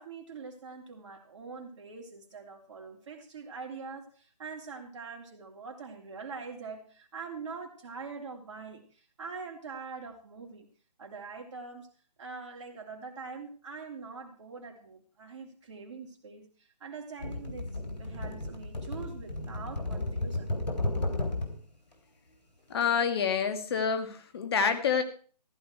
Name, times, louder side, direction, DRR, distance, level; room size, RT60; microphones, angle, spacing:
voice 1, 0.0-10.7 11.0-11.9 12.2-16.5 16.8-17.7 18.0-20.5, right 4 dB, 45° right, 2 dB, 3.1 m, -43 dB
Tray Lid Rumbling, 17.2-21.6 22.7-22.9, left 2 dB, 80° left, 3.5 m, -33 dB
voice 2, 22.7-25.0, left 6 dB, 35° left, 8 dB, 1.9 m, -27 dB
14.5 x 11.0 x 4.5 m, 0.42 s
figure-of-eight pair, 150°, 21 cm